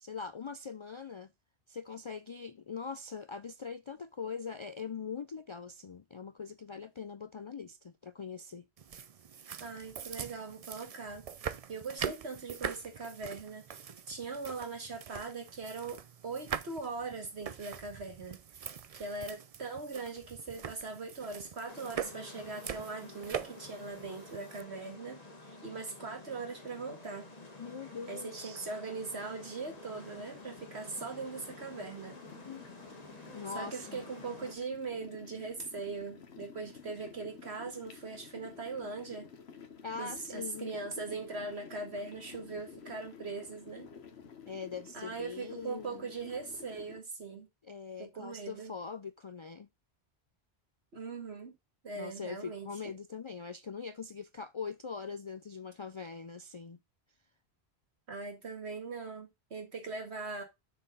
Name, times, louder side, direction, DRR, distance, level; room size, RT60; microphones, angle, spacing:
voice 1, 0.0-1.3 1.7-8.7 27.6-28.7 32.5-32.6 33.3-34.0 39.8-40.7 44.5-46.1 47.6-49.7 52.0-56.8, left 5 dB, 55° left, 0.3 m, -42 dB
sound 1, 8.8-24.6, right 7 dB, 45° right, 0.5 m, -43 dB
voice 2, 9.6-11.3 11.7-18.4 18.9-27.3 28.1-32.2 33.5-39.3 40.0-43.9 44.9-47.5 48.0-48.7 50.9-51.5 51.8-52.9 58.1-60.4, right 4 dB, 80° right, 2.3 m, -41 dB
sound 2, 21.7-34.5, left 2 dB, 40° left, 1.6 m, -50 dB
sound 3, 28.6-47.0, left 6 dB, 80° left, 1.4 m, -53 dB
6.5 x 4.5 x 5.4 m
omnidirectional pair, 1.1 m